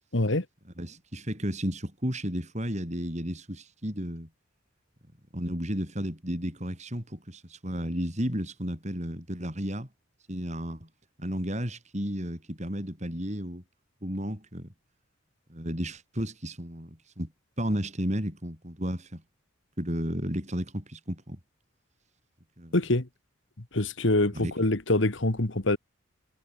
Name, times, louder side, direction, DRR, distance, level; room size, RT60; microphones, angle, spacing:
voice 1, 0.1-0.5 22.7-23.1 23.7-25.8, left 2 dB, 65° left, 1.8 m, -25 dB
voice 2, 0.8-4.3 5.3-9.9 10.3-10.9 11.2-13.6 14.0-14.7 15.5-17.3 17.6-19.2 19.8-21.4 22.6-22.7 24.3-24.5, equal, 35° right, 6.6 m, -33 dB
head